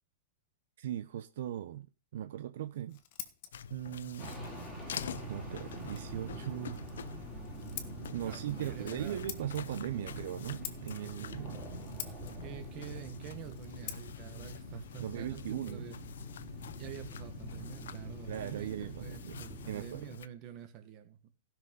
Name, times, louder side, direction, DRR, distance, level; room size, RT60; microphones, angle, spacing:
voice 1, 0.8-1.9 2.1-3.0 3.7-4.3 5.2-6.8 8.1-11.6 15.0-15.9 18.3-20.2, right 11 dB, 60° right, 0.7 m, -39 dB
Scissors, 2.6-16.2, left 11 dB, 40° left, 1.5 m, -50 dB
sound 1, 3.5-20.3, left 7 dB, 90° left, 0.7 m, -47 dB
sound 2, 4.2-19.9, right 2 dB, ahead, 3.0 m, -46 dB
voice 2, 8.2-9.2 12.4-16.0 16.8-21.3, right 11 dB, 30° right, 1.6 m, -47 dB
15.5 x 6.2 x 5.4 m
supercardioid pair, 170°, 0 cm